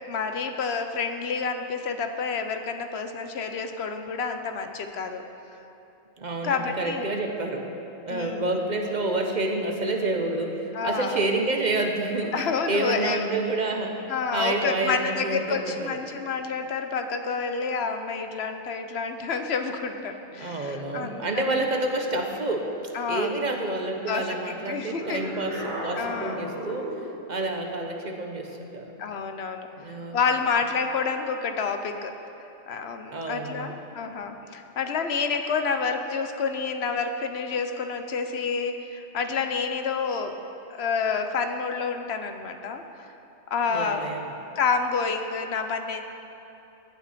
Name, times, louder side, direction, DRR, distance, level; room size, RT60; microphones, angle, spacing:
voice 1, 0.1-5.2 6.4-7.0 8.1-8.5 10.7-11.2 12.3-13.3 14.1-21.6 22.9-23.4 24.1-25.3 26.0-26.5 29.0-29.7 30.1-32.1 32.7-40.4 40.7-42.8 43.5-44.1 44.6-46.0, left 5 dB, 60° left, 7 dB, 0.9 m, -29 dB
voice 2, 6.2-16.0 20.3-22.7 23.1-26.9 27.3-28.9 29.8-30.2 33.1-33.7 43.7-44.3, right 2 dB, 40° right, 3 dB, 0.9 m, -29 dB
sound 1, 24.9-27.2, equal, 85° right, 3.4 m, -34 dB
15.0 x 9.0 x 4.2 m, 2.9 s
omnidirectional pair, 1.3 m